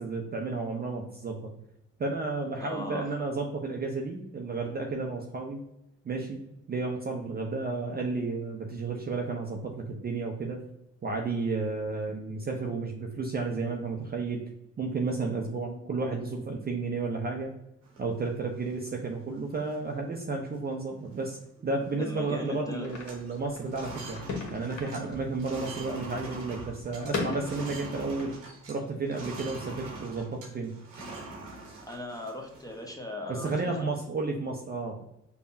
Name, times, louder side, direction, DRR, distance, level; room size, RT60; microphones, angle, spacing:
voice 1, 0.0-1.5 2.0-5.6 6.0-6.4 6.7-10.6 11.0-14.4 14.8-17.5 18.0-24.2 24.5-28.3 28.7-30.7 33.3-35.0, right 3 dB, 25° right, 1 dB, 0.6 m, -32 dB
voice 2, 2.6-3.1 22.0-22.9 31.9-33.9, left 1 dB, 10° left, 1 dB, 0.8 m, -38 dB
sound 1, 17.8-18.9 19.4-19.5 19.7-20.1 20.5-20.7 21.0-22.1 22.3-22.6 22.8-28.8 29.1-32.9, right 2 dB, 85° right, 1.0 m, -44 dB
sound 2, 22.8-28.3, left 4 dB, 50° left, 1.1 m, -39 dB
5.2 x 2.2 x 2.6 m, 0.83 s
hypercardioid pair, 50°, 38 cm